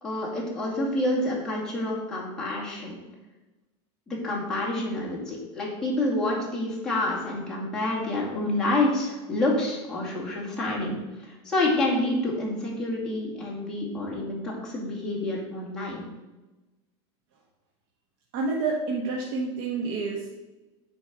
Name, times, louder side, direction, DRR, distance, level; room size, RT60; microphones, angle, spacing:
voice 1, 0.0-3.0 4.1-16.0, left 2 dB, 5° left, -6 dB, 2.3 m, -28 dB
voice 2, 18.3-20.3, right 4 dB, 50° right, -2 dB, 1.3 m, -28 dB
8.8 x 4.7 x 6.1 m, 1.1 s
supercardioid pair, 170°, 15 cm